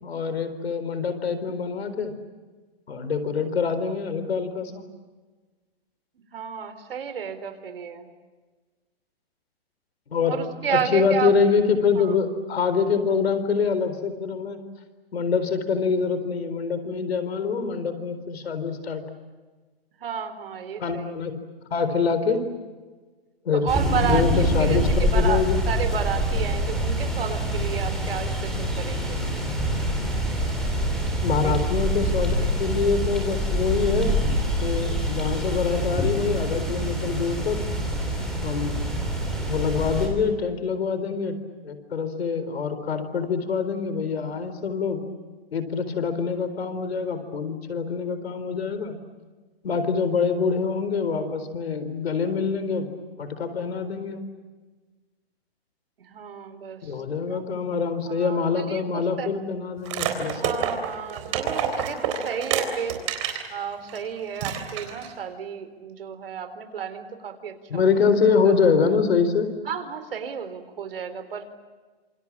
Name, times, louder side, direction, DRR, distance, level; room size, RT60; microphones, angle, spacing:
voice 1, 0.0-2.1 2.9-4.8 10.1-10.4 10.7-14.6 15.1-19.0 20.8-21.4 21.7-22.5 23.4-23.7 24.1-25.6 31.2-34.2 34.6-37.6 38.4-38.8 39.5-41.4 41.6-45.1 45.5-49.0 49.6-52.9 53.2-54.2 56.8-60.5 67.7-69.5, left 5 dB, 85° left, 11 dB, 4.3 m, -25 dB
voice 2, 6.2-8.1 10.2-11.3 12.0-12.1 20.0-21.1 23.5-29.3 31.4-31.5 32.4-32.5 56.1-57.4 58.1-59.3 60.3-63.0 63.5-67.9 68.4-68.5 69.7-71.5, right 7 dB, 65° right, 9 dB, 4.1 m, -32 dB
Background Noise Leafs gentle creaking, 23.7-40.1, equal, ahead, 3.6 m, -25 dB
sound 1, 59.8-63.5 63.9-64.0 64.4-65.1, right 8 dB, 30° right, 3.7 m, -28 dB
29.0 x 27.5 x 7.4 m, 1.3 s
hypercardioid pair, 175°, 31 cm